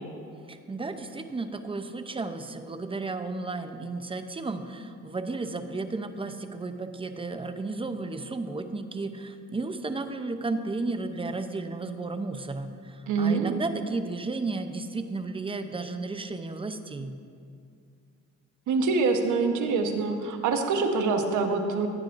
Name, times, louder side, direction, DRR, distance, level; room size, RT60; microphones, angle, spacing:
voice 1, 0.5-17.2, right 3 dB, 20° right, 8 dB, 0.6 m, -33 dB
voice 2, 13.1-13.6 18.7-21.9, right 4 dB, 75° right, 4 dB, 1.1 m, -25 dB
15.5 x 9.2 x 2.6 m, 2.3 s
cardioid pair, 90°, 30 cm